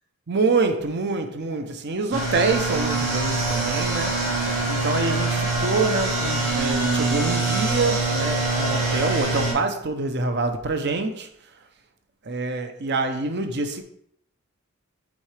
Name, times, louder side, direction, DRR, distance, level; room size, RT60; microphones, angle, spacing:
voice 1, 0.3-4.2 4.7-11.3 12.3-13.8, right 3 dB, 50° right, 0.7 m, -26 dB
sound 1, 2.1-9.5, right 3 dB, 85° right, 2.1 m, -24 dB
8.5 x 3.7 x 3.3 m
head